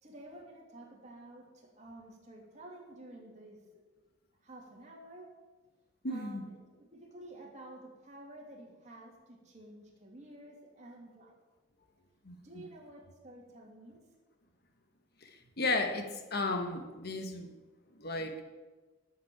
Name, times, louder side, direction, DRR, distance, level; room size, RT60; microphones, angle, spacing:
voice 1, 0.0-3.8 4.4-5.3 6.1-11.4 12.4-14.0 15.4-15.5, right 1 dB, 40° right, -1 dB, 3.0 m, -51 dB
voice 2, 6.0-6.5 12.2-12.4 15.2-15.3 15.6-17.5 18.0-18.3, left 2 dB, 55° left, 6 dB, 1.4 m, -34 dB
12.0 x 7.4 x 8.9 m, 1.3 s
head